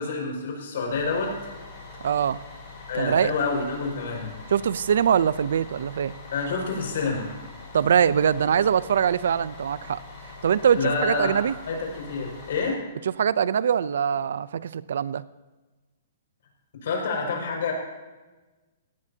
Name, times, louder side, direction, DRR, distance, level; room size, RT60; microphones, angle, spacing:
voice 1, 0.0-1.3 2.9-4.3 6.3-7.3 10.7-11.4 11.7-12.8 16.8-17.7, left 4 dB, 60° left, 0 dB, 5.8 m, -28 dB
Bus, 0.9-12.7, left 3 dB, 20° left, 5.5 m, -43 dB
voice 2, 2.0-2.4 2.9-3.3 4.5-6.1 7.7-10.0 10.4-11.5 13.0-15.2, right 8 dB, 70° right, 18 dB, 0.5 m, -23 dB
18.0 x 16.0 x 2.8 m, 1.2 s
hypercardioid pair, 170°, 0 cm